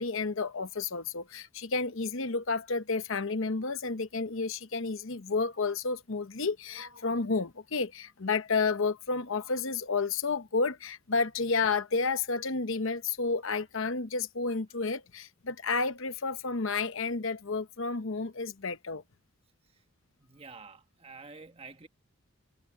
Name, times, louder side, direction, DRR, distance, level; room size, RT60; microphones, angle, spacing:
voice 1, 0.0-19.0, left 4 dB, 65° left, 0.9 m, -31 dB
voice 2, 20.2-21.9, right 4 dB, 25° right, 1.4 m, -48 dB
head